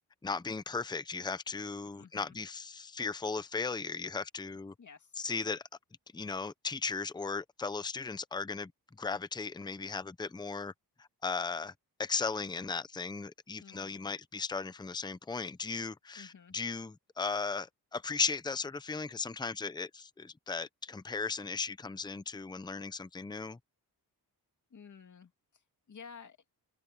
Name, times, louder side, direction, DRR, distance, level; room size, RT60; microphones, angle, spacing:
voice 1, 0.2-4.7 5.2-5.6 6.1-8.7 9.0-10.7 11.0-11.7 12.0-23.6, left 4 dB, 10° left, 0.6 m, -36 dB
voice 2, 1.9-2.4 4.8-5.3 13.6-14.1 16.2-16.5 24.7-25.6 25.9-26.4, left 6 dB, 50° left, 2.4 m, -53 dB
wide cardioid pair, 120°, 39 cm